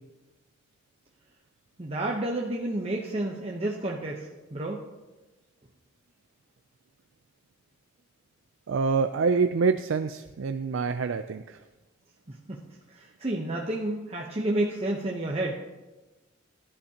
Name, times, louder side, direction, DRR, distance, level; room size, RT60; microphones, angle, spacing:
voice 1, 1.8-4.8 12.3-12.6 12.9-15.6, right 1 dB, 30° right, -1 dB, 0.9 m, -30 dB
voice 2, 8.7-11.6, right 5 dB, 70° right, 8 dB, 0.4 m, -26 dB
18.5 x 11.0 x 2.9 m, 1.1 s
head